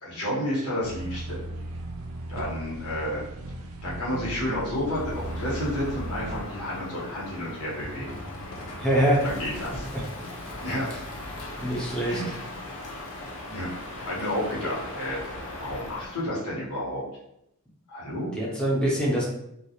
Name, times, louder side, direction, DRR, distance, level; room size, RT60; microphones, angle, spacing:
voice 1, 0.0-1.4 2.3-3.3 3.8-8.1 9.2-9.9 10.6-10.9 12.0-12.4 13.5-13.7 14.1-15.2 15.6-17.0 17.9-18.3, left 1 dB, 90° left, -5 dB, 1.0 m, -31 dB
sound 1, 0.8-6.4, right 1 dB, 70° right, 0.3 m, -36 dB
Crow, 4.8-16.2, left 1 dB, 70° left, 0.5 m, -38 dB
voice 2, 8.8-9.2 9.9-10.0 11.6-12.2 18.3-19.2, right 1 dB, 5° left, -5 dB, 0.5 m, -24 dB
2.3 x 2.0 x 2.8 m, 0.79 s
head